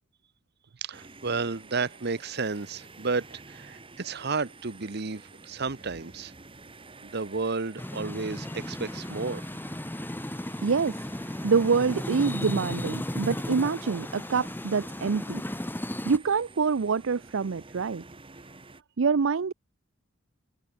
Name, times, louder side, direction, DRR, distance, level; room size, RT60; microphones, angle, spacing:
voice 1, 0.8-6.3 7.0-9.4, right 4 dB, 55° right, 1.1 m, -32 dB
sound 1, 0.9-18.8, right 3 dB, 25° right, 2.2 m, -50 dB
sound 2, 7.8-16.2, left 1 dB, 10° left, 0.9 m, -35 dB
voice 2, 10.6-15.4 16.1-18.0 19.0-19.5, right 5 dB, 75° right, 0.5 m, -26 dB
head